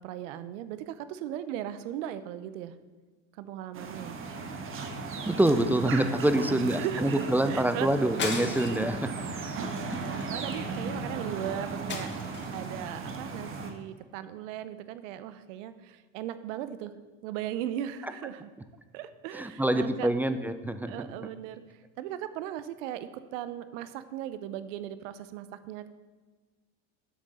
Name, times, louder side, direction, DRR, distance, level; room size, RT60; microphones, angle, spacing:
voice 1, 0.0-2.8 3.3-4.2 6.4-7.9 9.6-18.5 18.9-20.1 20.8-25.9, right 11 dB, 85° right, 13 dB, 0.8 m, -38 dB
sound 1, 3.7-13.7, right 4 dB, 35° right, 1.3 m, -36 dB
voice 2, 5.2-9.3 19.3-21.1, right 1 dB, 5° right, 9 dB, 0.4 m, -26 dB
sound 2, 8.2-8.9 9.4-9.6 9.9-10.9 11.9-12.7, left 4 dB, 30° left, 1.5 m, -37 dB
8.2 x 6.2 x 6.9 m, 1.4 s
supercardioid pair, 120°, 36 cm